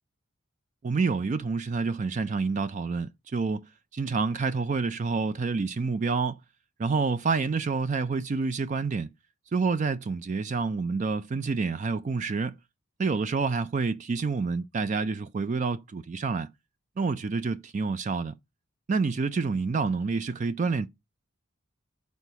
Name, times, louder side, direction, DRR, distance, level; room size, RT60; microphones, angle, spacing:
voice 1, 0.8-6.4 6.8-9.1 9.5-12.5 13.0-16.5 17.0-18.4 18.9-20.9, right 4 dB, 35° right, 0.3 m, -28 dB
6.4 x 4.0 x 5.5 m
head